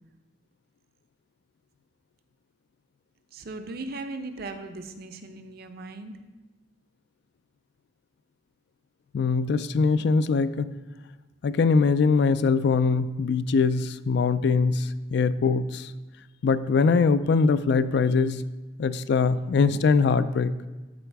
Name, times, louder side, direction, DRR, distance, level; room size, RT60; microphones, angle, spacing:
voice 1, 3.3-6.1, right 2 dB, 60° right, 7 dB, 0.7 m, -38 dB
voice 2, 9.1-10.7 11.4-15.9 16.4-18.4 18.8-20.5, left 4 dB, 65° left, 14 dB, 0.3 m, -22 dB
12.5 x 4.8 x 3.4 m, 1.1 s
head